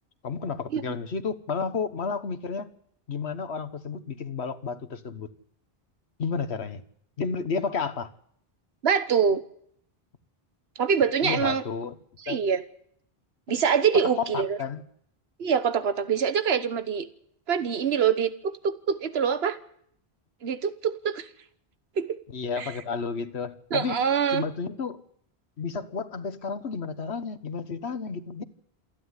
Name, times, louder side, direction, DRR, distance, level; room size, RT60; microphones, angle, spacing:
voice 1, 0.2-2.7 3.1-5.3 6.2-6.8 7.2-8.1 11.2-11.9 12.3-12.4 14.0-14.8 22.3-24.0 24.3-25.0 25.6-28.4, left 5 dB, 85° left, 11 dB, 1.5 m, -31 dB
voice 2, 8.8-9.4 10.8-11.6 12.2-12.6 13.5-14.6 15.4-17.1 17.5-19.6 20.4-21.3 22.0-22.2 22.6-22.7 23.7-24.4, right 7 dB, 75° right, 11 dB, 1.4 m, -24 dB
28.0 x 11.0 x 9.7 m, 0.68 s
omnidirectional pair, 1.1 m